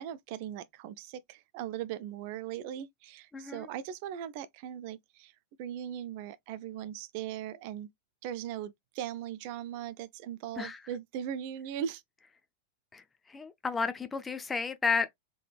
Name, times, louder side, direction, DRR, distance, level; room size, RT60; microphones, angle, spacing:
voice 1, 0.0-5.3 5.6-7.9 8.2-12.0, right 10 dB, 50° right, 0.4 m, -39 dB
voice 2, 3.3-3.7 10.6-10.8 12.9-13.0 13.3-15.1, left 5 dB, 15° left, 0.5 m, -32 dB
3.8 x 3.2 x 2.3 m
figure-of-eight pair, 90°, 0 cm